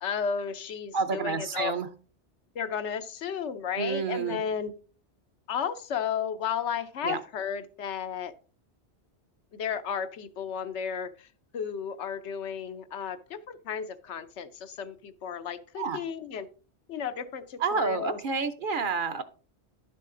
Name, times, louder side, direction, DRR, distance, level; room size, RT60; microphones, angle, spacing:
voice 1, 0.0-1.8 2.5-4.7 5.5-8.3 9.5-11.3 11.5-16.5 16.9-18.2, left 7 dB, 90° left, 10 dB, 1.1 m, -33 dB
voice 2, 0.9-1.9 3.8-4.4 7.0-7.2 15.8-16.0 17.6-19.2, right 5 dB, 55° right, 9 dB, 0.8 m, -29 dB
11.0 x 6.7 x 3.7 m, 0.39 s
omnidirectional pair, 1.1 m